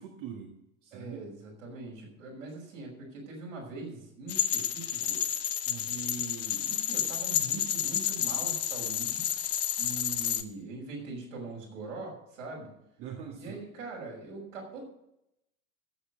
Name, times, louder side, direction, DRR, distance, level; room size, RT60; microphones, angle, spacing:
voice 1, 0.0-1.3 5.7-5.9 13.0-13.7, right 8 dB, 50° right, 0 dB, 2.1 m, -43 dB
voice 2, 0.9-5.2 5.8-9.3 9.8-12.7 13.4-14.8, right 3 dB, 70° right, -2 dB, 6.0 m, -42 dB
sound 1, 4.3-10.4, left 11 dB, 35° left, 1.1 m, -30 dB
13.5 x 8.4 x 6.6 m, 0.83 s
figure-of-eight pair, 70°, 40 cm